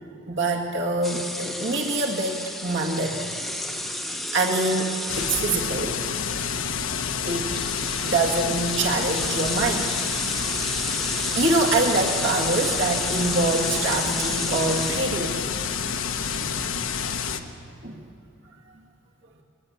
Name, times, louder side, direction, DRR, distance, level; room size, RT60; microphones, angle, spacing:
voice 1, 0.3-3.2 4.3-6.0 7.3-7.7 8.0-9.9 11.3-15.4 16.4-16.6 17.8-18.0, right 2 dB, 60° right, 0 dB, 2.1 m, -25 dB
sound 1, 1.0-5.8 7.0-7.1 7.4-15.3, left 1 dB, ahead, 0.9 m, -32 dB
sound 2, 5.1-17.4, left 6 dB, 75° left, 1.3 m, -28 dB
22.5 x 19.0 x 9.5 m, 2.4 s
head